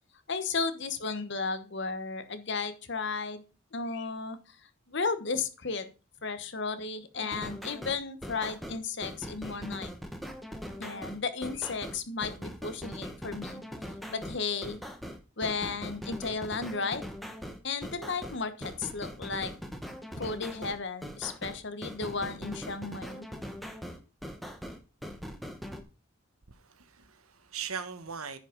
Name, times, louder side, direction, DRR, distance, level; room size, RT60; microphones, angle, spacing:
voice 1, 0.3-3.4 3.7-4.6 4.9-5.9 6.2-9.9 10.8-13.6 14.1-14.8 15.4-17.0 17.6-19.5 20.2-23.3, left 4 dB, 55° left, 1.1 m, -34 dB
sound 1, 7.1-25.8, equal, ahead, 1.0 m, -41 dB
voice 2, 26.5-28.4, right 6 dB, 85° right, 1.3 m, -40 dB
9.9 x 5.2 x 5.2 m
head